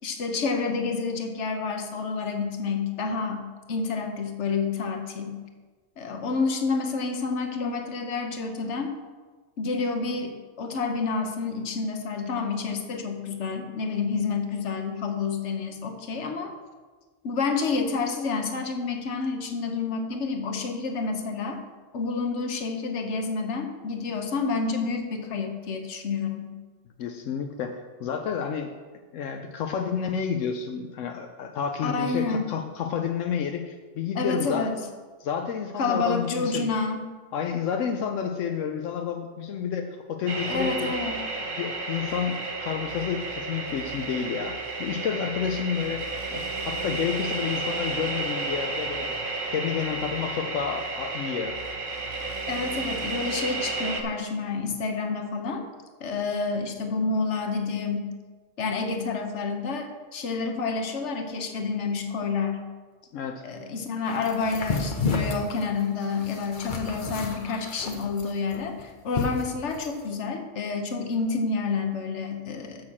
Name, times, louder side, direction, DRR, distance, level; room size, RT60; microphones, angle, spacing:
voice 1, 0.0-5.4 6.0-8.9 9.6-16.5 17.2-21.6 21.9-26.5 31.8-32.5 34.1-34.8 35.8-37.0 40.5-41.2 52.5-55.6 56.0-58.0 58.6-62.6 63.4-72.8, left 4 dB, 70° left, 5 dB, 1.3 m, -29 dB
voice 2, 27.0-28.7 29.1-34.7 35.2-36.7 37.3-40.9 41.4-46.0 46.3-49.2 49.5-51.6 63.1-63.4, left 7 dB, 90° left, 4 dB, 1.0 m, -30 dB
sound 1, 40.3-54.0, right 3 dB, 45° right, 1.1 m, -32 dB
sound 2, 64.2-70.0, left 4 dB, 45° left, 1.0 m, -32 dB
6.5 x 6.2 x 7.2 m, 1.4 s
omnidirectional pair, 1.3 m